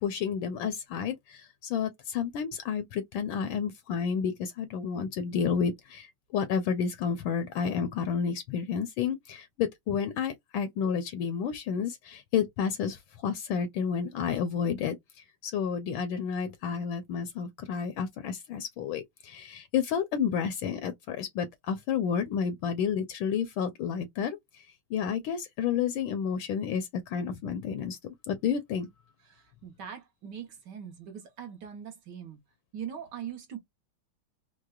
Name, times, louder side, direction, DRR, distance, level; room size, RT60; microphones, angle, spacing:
voice 1, 0.0-28.9, left 7 dB, 75° left, 1.3 m, -31 dB
voice 2, 29.3-32.4 32.7-33.6, right 8 dB, 65° right, 1.3 m, -41 dB
4.7 x 2.0 x 2.2 m
omnidirectional pair, 2.4 m